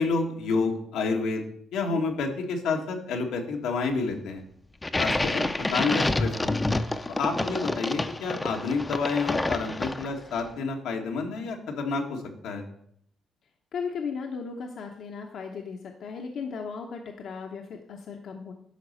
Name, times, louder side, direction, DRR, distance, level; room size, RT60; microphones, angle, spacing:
voice 1, 0.0-1.4 1.7-4.4 5.0-6.5 7.1-12.6, left 4 dB, 90° left, 1 dB, 1.6 m, -29 dB
sound 1, 4.8-10.3, left 2 dB, 15° left, 0.6 m, -28 dB
voice 2, 13.7-18.5, left 5 dB, 65° left, 3 dB, 1.0 m, -36 dB
11.0 x 4.1 x 6.5 m, 0.68 s
cardioid pair, 90°, 0 cm